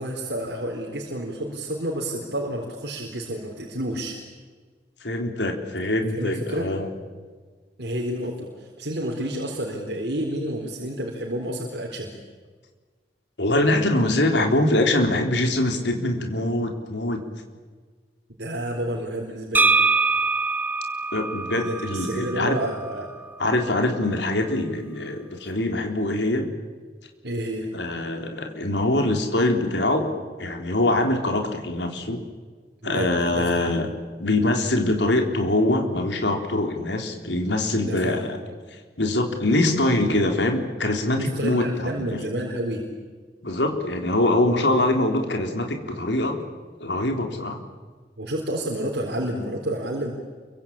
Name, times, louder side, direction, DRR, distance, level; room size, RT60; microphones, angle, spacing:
voice 1, 0.0-4.1 5.8-5.9 6.2-6.8 7.8-12.1 18.4-19.8 21.5-23.1 27.2-27.7 32.8-33.8 37.8-38.4 41.1-42.8 44.7-44.8 48.2-50.1, right 1 dB, 70° right, -1 dB, 4.1 m, -30 dB
voice 2, 5.0-6.9 13.4-17.3 21.1-22.6 23.4-26.5 27.7-30.1 30.4-32.2 32.8-33.9 34.2-38.2 39.0-42.2 43.4-46.4 46.8-47.6, left 1 dB, 85° left, 4 dB, 3.8 m, -23 dB
sound 1, 19.5-23.3, right 3 dB, 10° right, 1.1 m, -24 dB
28.5 x 24.0 x 8.7 m, 1.5 s
head